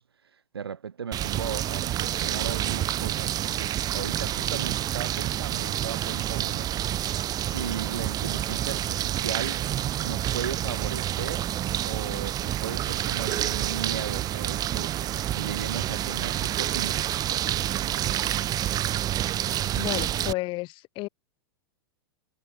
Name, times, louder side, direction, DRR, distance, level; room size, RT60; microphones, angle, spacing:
voice 1, 0.0-6.7 7.4-9.6 10.0-11.5 11.8-17.2, right 7 dB, 75° right, 1.9 m, -36 dB
sound 1, 1.1-20.3, right 12 dB, 30° right, 1.5 m, -28 dB
sound 2, 12.4-18.4, right 18 dB, 55° right, 2.7 m, -44 dB
voice 2, 19.8-21.1, left 21 dB, 40° left, 2.3 m, -32 dB
figure-of-eight pair, 95°, 13 cm